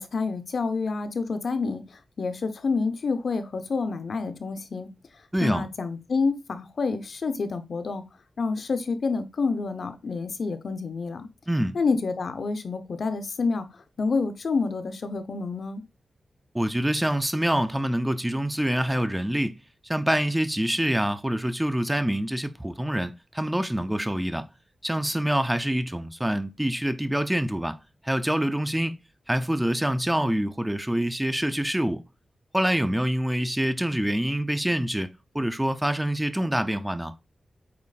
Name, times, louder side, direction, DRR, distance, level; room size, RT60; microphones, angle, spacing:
voice 1, 0.0-4.9 5.4-8.0 8.4-11.3 11.7-15.8, left 4 dB, 65° left, 0.9 m, -28 dB
voice 2, 5.3-5.7 11.5-11.8 16.5-19.6 19.8-24.5 24.8-27.8 28.0-29.0 29.3-32.0 32.5-35.1 35.3-37.1, right 1 dB, 10° right, 0.6 m, -26 dB
8.6 x 3.1 x 4.2 m
wide cardioid pair, 105°, 0 cm